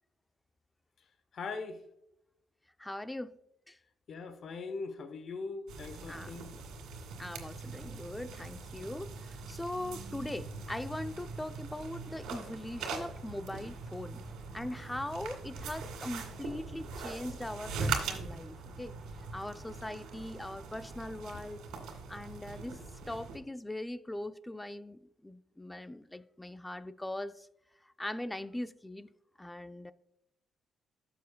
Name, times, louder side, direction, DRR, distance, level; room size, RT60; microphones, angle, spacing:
voice 1, 1.3-1.8 4.1-6.5 21.3-21.5, left 4 dB, 55° left, 1.0 m, -41 dB
voice 2, 2.8-3.3 3.7-3.8 6.1-6.4 7.2-14.2 14.5-18.9 19.3-21.6 22.1-22.8 23.1-27.5 28.0-29.1 29.4-29.9, left 1 dB, 10° left, 0.5 m, -41 dB
sound 1, 5.7-23.4, right 4 dB, 85° right, 2.1 m, -41 dB
13.5 x 6.9 x 2.3 m
cardioid pair, 90°, 0 cm